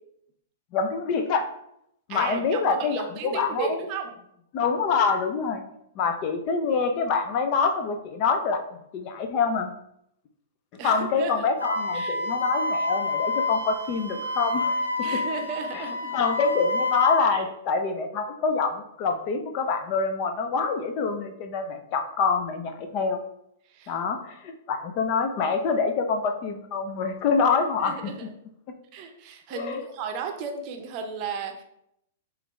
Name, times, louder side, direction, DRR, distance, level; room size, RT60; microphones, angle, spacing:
voice 1, 0.7-1.4 2.1-3.8 4.5-5.6 6.0-8.6 8.9-9.7 10.8-14.8 16.1-23.2 23.9-28.1 29.6-29.8, left 5 dB, 40° left, 6 dB, 0.5 m, -26 dB
voice 2, 2.1-4.1 10.8-11.5 11.9-12.1 15.0-16.1 17.3-17.5 23.7-23.9 27.8-28.3 28.9-31.6, right 5 dB, 35° right, 4 dB, 0.7 m, -34 dB
Wind instrument woodwind instrument, 11.6-17.3, left 3 dB, 85° left, 0.7 m, -28 dB
5.8 x 2.5 x 3.2 m, 0.77 s
figure-of-eight pair, 105°, 0 cm